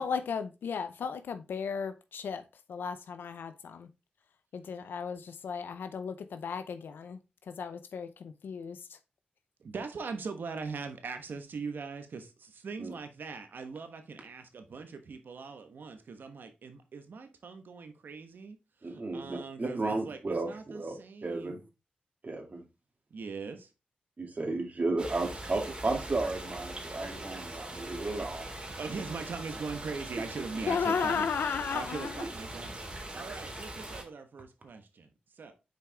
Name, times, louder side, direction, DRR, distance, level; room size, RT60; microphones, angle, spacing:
voice 1, 0.0-2.4 2.7-3.9 4.5-7.2 7.5-9.0 30.7-32.2, left 6 dB, 80° left, 0.6 m, -34 dB
voice 2, 9.6-21.6 23.1-23.7 28.6-31.3 31.7-35.5, right 4 dB, 75° right, 1.2 m, -41 dB
voice 3, 18.8-21.0 21.2-21.6 22.2-22.6 24.2-28.5, right 3 dB, 50° right, 2.2 m, -33 dB
sound 1, 25.0-34.0, right 1 dB, 30° right, 2.4 m, -42 dB
6.6 x 4.8 x 3.4 m
supercardioid pair, 40°, 3 cm